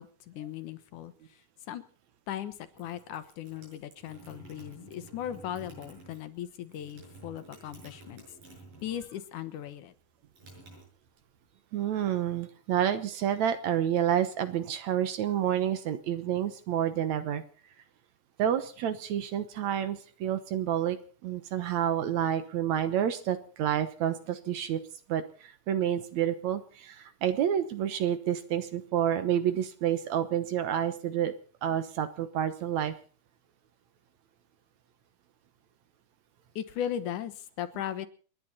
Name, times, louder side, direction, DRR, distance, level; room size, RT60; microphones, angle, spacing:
voice 1, 0.0-1.4 1.7-1.8 2.3-8.2 8.8-9.9 36.6-38.1, left 10 dB, 75° left, 11 dB, 2.5 m, -38 dB
sound 1, 2.5-9.3 9.6-11.4, right 2 dB, 85° right, 8.3 m, -52 dB
voice 2, 11.7-17.4 18.4-21.0 21.2-24.8 25.1-31.3 31.6-32.9, right 10 dB, 65° right, 11 dB, 2.2 m, -29 dB
29.5 x 10.5 x 4.2 m, 0.41 s
omnidirectional pair, 3.7 m